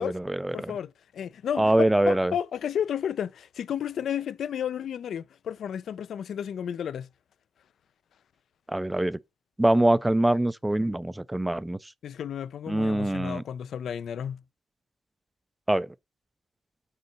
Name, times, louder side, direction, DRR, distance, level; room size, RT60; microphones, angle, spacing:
voice 1, 0.0-0.7 1.6-2.3 8.7-9.2 9.6-11.8 12.7-13.4 15.7-15.9, right 1 dB, 10° right, 0.3 m, -24 dB
voice 2, 0.5-7.1 12.0-14.4, left 9 dB, 60° left, 0.4 m, -32 dB
6.7 x 4.5 x 5.3 m
cardioid pair, 90°, 0 cm